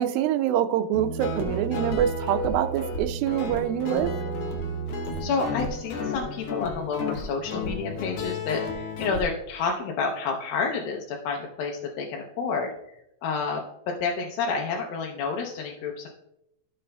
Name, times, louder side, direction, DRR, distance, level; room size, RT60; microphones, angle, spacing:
voice 1, 0.0-4.1, right 10 dB, 85° right, 9 dB, 2.4 m, -25 dB
Guitar, 0.9-9.2, left 1 dB, 65° left, 1.7 m, -32 dB
voice 2, 5.2-13.0 13.2-16.1, left 4 dB, 85° left, 1 dB, 2.6 m, -29 dB
13.5 x 6.7 x 2.2 m, 0.81 s
omnidirectional pair, 4.2 m